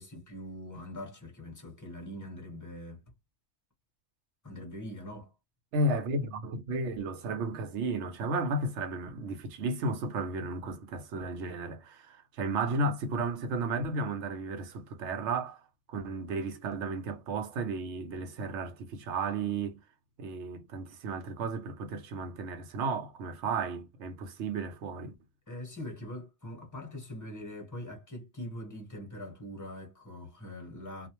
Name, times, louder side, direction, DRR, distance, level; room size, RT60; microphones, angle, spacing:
voice 1, 0.0-3.0 4.4-5.3 25.5-31.1, left 1 dB, 15° left, 0.9 m, -42 dB
voice 2, 5.7-15.6 15.9-19.8 20.2-25.1, right 3 dB, 80° right, 1.0 m, -33 dB
2.4 x 2.0 x 2.9 m
omnidirectional pair, 1.2 m